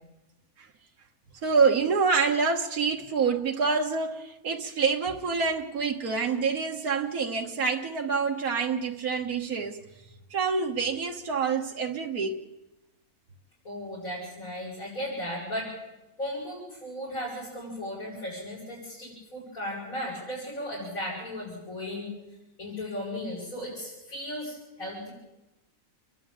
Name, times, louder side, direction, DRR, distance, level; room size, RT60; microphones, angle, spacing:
voice 1, 1.4-9.8 10.3-12.4, right 5 dB, 85° right, 1.9 m, -27 dB
voice 2, 13.6-15.7 16.2-22.1 22.6-25.1, left 1 dB, 65° left, 8.5 m, -36 dB
29.5 x 12.0 x 8.9 m
omnidirectional pair, 1.5 m